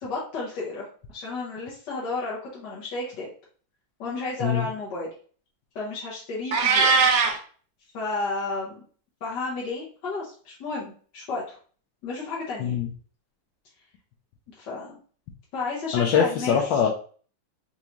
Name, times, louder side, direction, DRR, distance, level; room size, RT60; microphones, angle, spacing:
voice 1, 0.0-0.9 1.1-3.3 4.0-5.1 5.7-7.1 7.9-8.8 9.2-11.6 12.0-12.8 14.6-15.0 15.5-16.6, left 3 dB, 70° left, -6 dB, 1.6 m, -32 dB
Meow, 6.5-7.4, right 4 dB, 70° right, 1.2 m, -19 dB
voice 2, 15.9-16.9, left 8 dB, 90° left, -2 dB, 1.4 m, -22 dB
4.6 x 2.6 x 2.9 m, 0.43 s
omnidirectional pair, 2.0 m